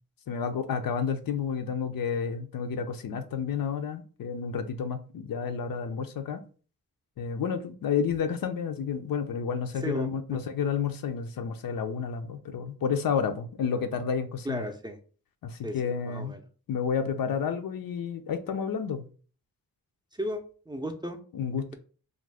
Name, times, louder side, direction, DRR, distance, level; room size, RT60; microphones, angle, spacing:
voice 1, 0.3-6.4 7.2-14.6 15.4-16.4 16.7-19.0 21.3-21.7, left 6 dB, 65° left, 0.5 m, -30 dB
voice 2, 14.4-15.0 15.6-16.4 20.1-21.2, equal, 10° right, 0.5 m, -35 dB
2.4 x 2.2 x 3.3 m
cardioid pair, 45°, 37 cm